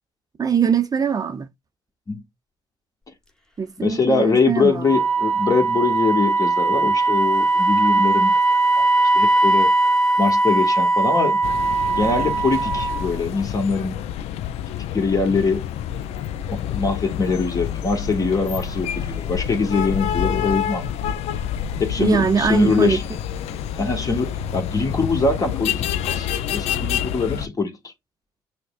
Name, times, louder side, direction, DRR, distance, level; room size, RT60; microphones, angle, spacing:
voice 1, 0.4-1.5 3.6-5.0 22.0-23.0, right 6 dB, 35° right, 0.6 m, -21 dB
voice 2, 3.8-8.3 8.8-8.9 9.1-9.7 10.2-11.4 11.9-14.0 14.9-15.7 16.5-21.2 21.8-23.0 23.8-27.9, left 4 dB, 30° left, 1.4 m, -23 dB
Wind instrument woodwind instrument, 4.8-13.1, right 3 dB, 5° left, 1.2 m, -19 dB
sound 1, 11.4-27.5, left 9 dB, 70° left, 0.4 m, -28 dB
6.3 x 2.2 x 2.3 m
supercardioid pair, 60°, 11 cm